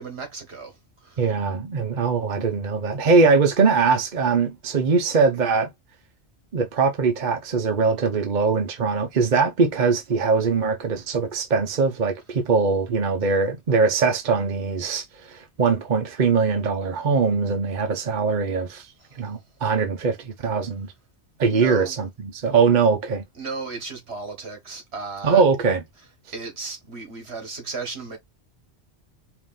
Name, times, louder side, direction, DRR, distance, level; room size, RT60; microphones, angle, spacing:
voice 1, 0.0-1.3 9.3-9.4 19.0-19.2 21.5-22.0 23.4-25.4 26.3-28.2, right 4 dB, 65° right, 1.9 m, -35 dB
voice 2, 1.2-5.7 6.5-20.9 21.4-23.2 25.2-25.8, right 4 dB, 45° right, 0.8 m, -22 dB
4.8 x 2.6 x 3.6 m
omnidirectional pair, 1.2 m